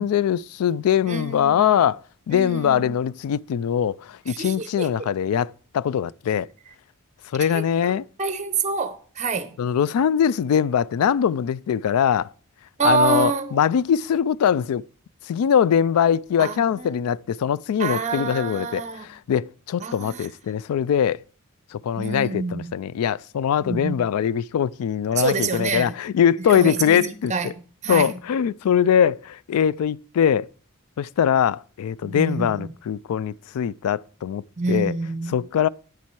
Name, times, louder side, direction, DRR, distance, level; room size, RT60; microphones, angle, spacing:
voice 1, 0.0-2.0 2.3-6.5 7.3-8.0 9.6-12.3 12.8-14.8 15.3-21.2 21.7-27.5 27.9-30.5 31.0-34.9 35.3-35.7, left 8 dB, 85° left, 0.3 m, -22 dB
voice 2, 1.1-1.7 2.3-2.9 4.3-4.9 7.4-7.9 8.2-9.6 12.8-13.6 16.4-17.0 17.8-19.1 19.8-20.3 22.0-22.7 23.6-24.0 25.1-26.0 26.4-28.2 32.0-32.7 34.6-35.4, right 4 dB, 35° right, 0.8 m, -27 dB
9.4 x 7.3 x 4.6 m
head